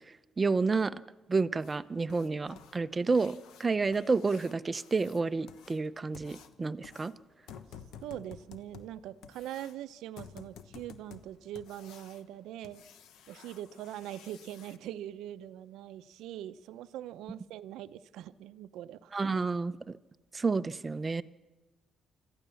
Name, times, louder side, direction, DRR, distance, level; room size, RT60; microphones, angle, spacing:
voice 1, 0.4-1.0 1.3-7.1 19.1-20.0 20.3-21.2, right 4 dB, 30° right, 15 dB, 0.7 m, -30 dB
sound 1, 1.6-14.8 17.1-17.2 17.6-17.7 18.2-18.3 18.8-18.9 19.3-19.5 19.9-20.0 20.4-20.5, left 8 dB, 85° left, 1.1 m, -53 dB
voice 2, 8.0-12.8 13.3-19.1, right 12 dB, 90° right, 13 dB, 0.6 m, -42 dB
26.0 x 14.5 x 7.0 m, 1.1 s
cardioid pair, 90°, 0 cm